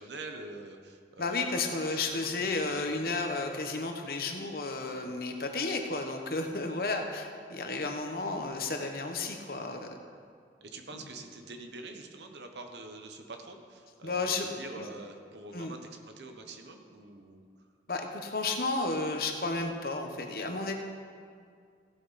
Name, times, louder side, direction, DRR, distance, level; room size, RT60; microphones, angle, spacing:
voice 1, 0.0-1.6 1.9-3.1 10.6-17.5, right 2 dB, 85° right, 4 dB, 1.1 m, -45 dB
voice 2, 1.2-10.0 14.0-14.5 14.8-14.9 15.5-15.7 17.9-20.7, left 3 dB, 55° left, 4 dB, 1.1 m, -32 dB
16.0 x 7.8 x 4.2 m, 2.2 s
head